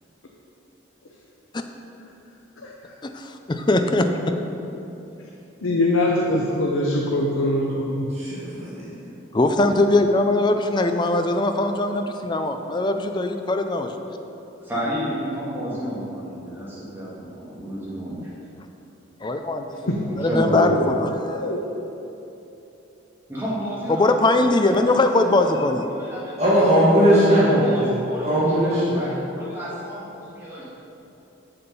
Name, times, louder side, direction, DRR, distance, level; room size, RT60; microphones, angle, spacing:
voice 1, 3.5-4.1 9.3-13.9 19.2-19.7 20.2-21.5 23.9-25.9, left 2 dB, 20° left, 6 dB, 0.4 m, -20 dB
voice 2, 5.6-8.1 19.9-20.0 21.3-21.6, left 1 dB, 90° left, -2 dB, 0.8 m, -22 dB
voice 3, 8.1-8.8 26.4-27.9 28.2-29.0, equal, 35° right, -9 dB, 2.1 m, -18 dB
voice 4, 14.6-18.2 20.0-20.9 23.3-25.7 26.0-26.6 27.1-30.6, equal, 10° right, -9 dB, 2.1 m, -31 dB
7.2 x 6.8 x 5.4 m, 3.0 s
head